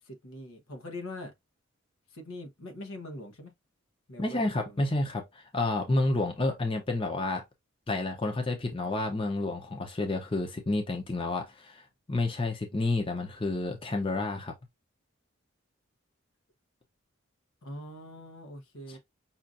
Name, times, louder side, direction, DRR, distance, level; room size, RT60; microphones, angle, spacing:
voice 1, 0.0-1.3 2.1-3.5 4.1-4.8 17.6-19.0, left 1 dB, 80° left, 1.1 m, -43 dB
voice 2, 4.2-7.4 7.9-14.5 18.9-19.0, left 2 dB, 25° left, 0.6 m, -30 dB
5.7 x 2.5 x 2.5 m
head